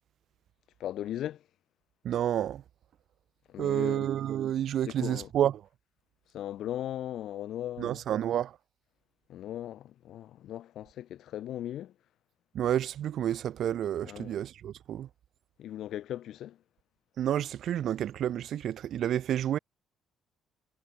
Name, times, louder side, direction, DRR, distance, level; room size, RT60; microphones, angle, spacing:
voice 1, 0.8-1.4 3.5-4.1 4.9-5.3 6.3-8.0 9.3-11.9 14.0-14.4 15.6-16.6, left 12 dB, 65° left, 4.4 m, -38 dB
voice 2, 2.0-2.6 3.6-5.5 7.8-8.6 12.5-15.1 17.2-19.6, right 11 dB, 65° right, 1.1 m, -29 dB
hypercardioid pair, 60°, 0 cm